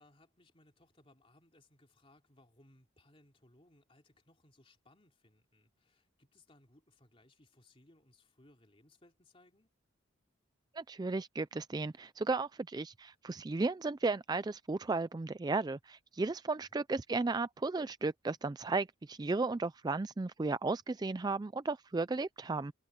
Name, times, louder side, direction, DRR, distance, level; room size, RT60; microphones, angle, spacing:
voice 1, 0.0-9.7 16.6-16.8, left 1 dB, 30° left, 3.2 m, -65 dB
voice 2, 10.7-22.7, right 3 dB, 20° right, 0.3 m, -34 dB
head